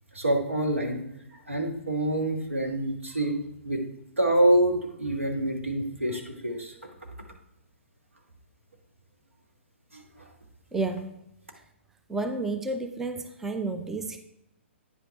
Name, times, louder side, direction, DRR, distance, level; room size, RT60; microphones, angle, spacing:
voice 1, 0.1-1.0 1.5-3.4 3.6-3.8 4.2-6.7 9.9-10.3, right 1 dB, 85° right, 2 dB, 1.5 m, -26 dB
voice 2, 10.7-11.2 12.1-14.2, right 3 dB, 5° right, 7 dB, 0.4 m, -31 dB
9.1 x 5.7 x 3.5 m, 0.81 s
figure-of-eight pair, 120°, 7 cm